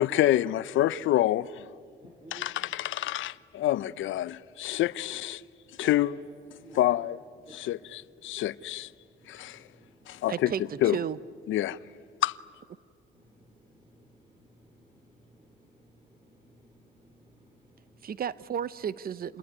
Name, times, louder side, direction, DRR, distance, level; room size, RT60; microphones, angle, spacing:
voice 1, 0.0-1.7 2.3-5.4 5.8-6.2 6.7-7.2 7.5-8.9 9.3-9.6 10.1-10.5 10.8-11.0 11.5-11.8 12.2-12.4, left 14 dB, 80° left, 0.6 m, -27 dB
voice 2, 2.0-2.5 5.8-6.1 6.5-7.0 7.5-7.9 9.2-10.3 13.1-18.0, right 1 dB, 25° right, 3.6 m, -53 dB
voice 3, 10.3-11.2 18.0-19.4, right 8 dB, 50° right, 0.8 m, -33 dB
28.0 x 21.5 x 9.6 m
cardioid pair, 90°, 20 cm